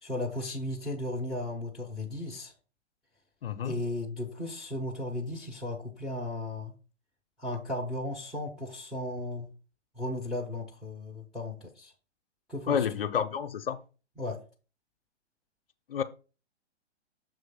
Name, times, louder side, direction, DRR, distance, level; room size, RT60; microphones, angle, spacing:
voice 1, 0.0-2.5 3.6-6.7 7.4-9.5 10.0-11.9 12.5-12.9 14.2-14.4, left 1 dB, ahead, 0.6 m, -35 dB
voice 2, 3.4-3.8 12.7-13.8 15.9-16.0, left 8 dB, 55° left, 0.6 m, -29 dB
6.8 x 3.1 x 5.7 m
figure-of-eight pair, 120°, 35 cm